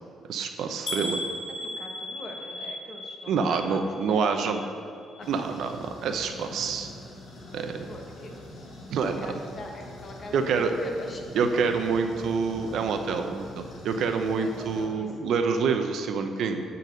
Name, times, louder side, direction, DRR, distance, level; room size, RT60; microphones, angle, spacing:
voice 1, 0.3-1.2 3.3-4.6 5.3-6.9 7.5-7.8 8.9-9.2 10.3-10.7 11.3-16.6, right 5 dB, 75° right, 6 dB, 0.7 m, -27 dB
sound 1, 0.9-4.8 5.1-5.8 6.2-6.3 6.7-6.8, left 1 dB, 60° left, 1.0 m, -37 dB
voice 2, 0.9-1.3 1.6-3.8 4.0-4.9 5.2-5.7 7.6-8.4 9.0-11.3 14.4-15.1, left 2 dB, 45° left, 2 dB, 1.3 m, -43 dB
sound 2, 5.2-14.9, left 1 dB, 80° left, 1.7 m, -44 dB
9.2 x 4.0 x 6.4 m, 2.4 s
cardioid pair, 90°, 0 cm